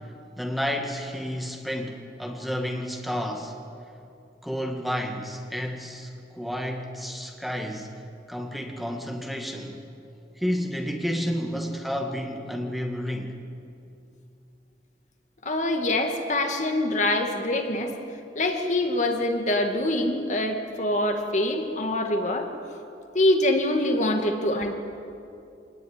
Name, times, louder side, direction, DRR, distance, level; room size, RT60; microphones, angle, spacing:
voice 1, 0.4-3.6 4.4-7.9 8.3-9.8 10.4-13.4, equal, ahead, 2 dB, 2.0 m, -31 dB
voice 2, 15.4-17.9 18.4-22.5 23.1-24.7, left 1 dB, 40° left, 4 dB, 2.2 m, -24 dB
26.0 x 19.0 x 9.7 m, 2.6 s
head